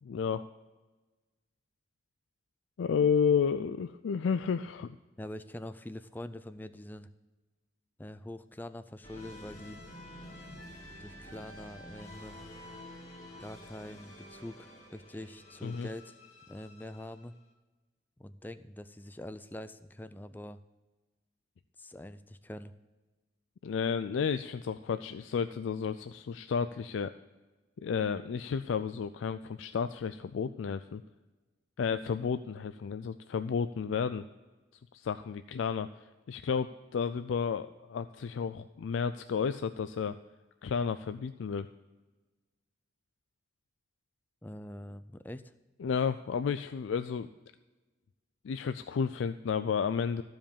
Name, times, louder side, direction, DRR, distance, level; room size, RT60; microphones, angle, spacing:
voice 1, 0.0-0.4 2.8-5.0 15.6-15.9 23.6-27.1 27.8-31.0 31.8-34.3 34.9-35.9 36.3-40.2 40.6-41.7 45.8-47.3 48.4-50.2, left 6 dB, 85° left, 11 dB, 0.4 m, -32 dB
voice 2, 5.2-7.1 8.0-9.8 11.0-12.4 13.4-16.1 16.5-17.3 18.2-20.6 21.8-22.7 44.4-45.5, left 1 dB, 10° left, 12 dB, 0.4 m, -44 dB
sound 1, 9.0-17.4, left 1 dB, 35° left, 2.4 m, -49 dB
14.0 x 5.1 x 7.0 m, 1.2 s
head